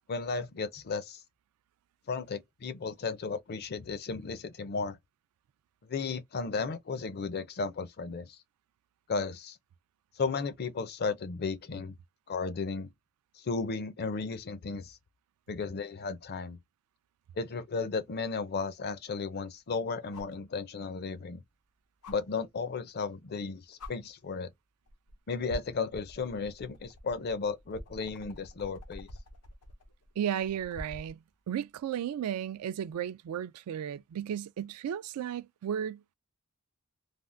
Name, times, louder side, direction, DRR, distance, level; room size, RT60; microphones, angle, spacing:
voice 1, 0.1-1.2 2.1-5.0 5.8-8.4 9.1-9.6 10.2-11.9 12.3-12.9 13.4-15.0 15.5-16.6 17.4-21.4 22.1-24.5 25.3-29.1, left 4 dB, 45° left, 0.5 m, -34 dB
sound 1, 17.9-18.0 20.1-20.4 22.0-22.2 23.3-23.4 23.8-23.9 24.9-25.1 25.5-31.2 32.8-32.9, left 1 dB, 90° left, 0.7 m, -46 dB
voice 2, 30.2-36.0, right 9 dB, 75° right, 0.3 m, -34 dB
3.4 x 2.0 x 2.5 m
head